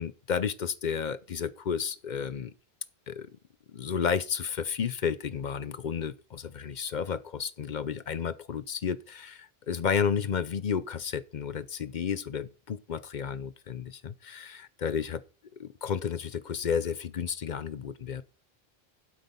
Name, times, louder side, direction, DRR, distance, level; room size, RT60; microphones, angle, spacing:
voice 1, 0.0-2.5 3.1-3.3 3.7-15.2 15.6-18.2, left 7 dB, 50° left, 0.7 m, -32 dB
8.2 x 7.8 x 5.4 m
omnidirectional pair, 1.0 m